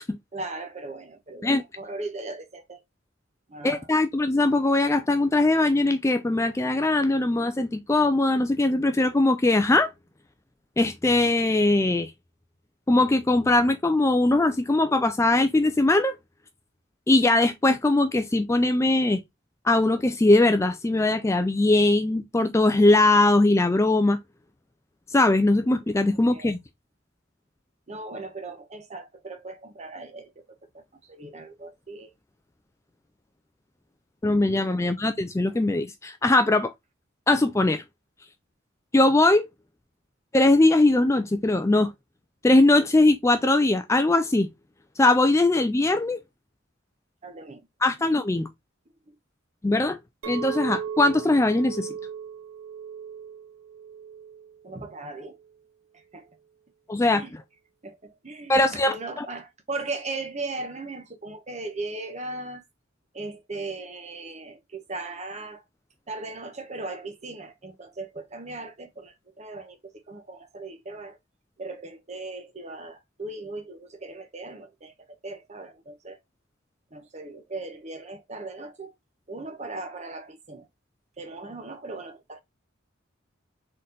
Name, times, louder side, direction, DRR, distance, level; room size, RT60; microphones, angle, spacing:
voice 1, 0.3-2.8 3.5-3.9 26.3-26.5 27.9-32.1 34.5-34.8 47.2-47.7 49.1-49.2 54.6-55.4 55.9-56.2 57.1-57.3 57.8-62.6 63.1-65.6 66.1-71.2 71.6-76.2 76.9-78.9 79.3-80.7 81.2-82.4, right 2 dB, 35° right, 0.9 m, -38 dB
voice 2, 3.6-9.9 10.8-12.1 12.9-16.1 17.1-19.2 19.6-24.2 25.1-26.6 34.2-36.7 37.3-37.8 38.9-39.5 40.3-41.9 42.4-44.5 45.0-46.2 47.8-48.5 49.6-50.0 50.3-51.9 56.9-57.2 58.5-59.3, left 2 dB, 15° left, 0.3 m, -21 dB
Chink clink, 50.2-55.4, right 8 dB, 85° right, 0.6 m, -37 dB
4.2 x 3.9 x 2.5 m
head